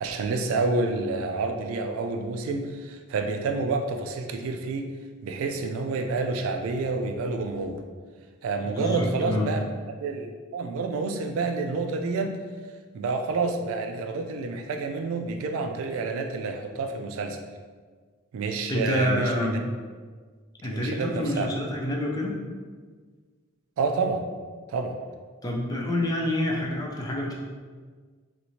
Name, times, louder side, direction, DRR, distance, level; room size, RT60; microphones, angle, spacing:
voice 1, 0.0-4.9 5.2-7.8 8.4-12.4 12.9-17.4 18.3-19.6 20.7-21.5 23.8-24.2 24.7-25.0, right 3 dB, 65° right, 6 dB, 0.3 m, -29 dB
voice 2, 8.7-9.5 18.7-19.7 20.6-22.3 25.4-27.3, left 1 dB, 15° left, -2 dB, 0.4 m, -27 dB
2.9 x 2.5 x 2.7 m, 1.5 s
head